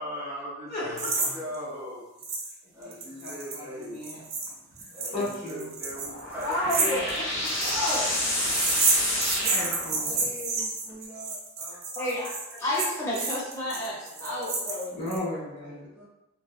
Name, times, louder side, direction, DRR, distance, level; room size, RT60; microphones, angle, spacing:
voice 1, 0.0-2.0 2.7-4.0 4.9-7.1 9.4-11.8 13.7-14.5 15.6-16.0, left 1 dB, 10° right, -10 dB, 0.7 m, -40 dB
voice 2, 0.7-1.4 2.8-4.5 4.8-5.7 7.4-7.5 9.5-10.1 12.6-12.9 14.9-15.8, left 1 dB, 50° left, -8 dB, 1.2 m, -36 dB
sound 1, 1.0-1.3 1.5-1.6 2.2-2.5 2.8-15.2, right 4 dB, 55° right, 0.7 m, -30 dB
sound 2, 5.8-10.4, left 1 dB, 70° left, 0.9 m, -29 dB
voice 3, 6.4-8.1 9.0-9.2 11.9-12.3 12.6-14.9 15.7-15.8, left 1 dB, 15° left, -10 dB, 1.0 m, -31 dB
2.9 x 2.3 x 2.5 m, 0.97 s
head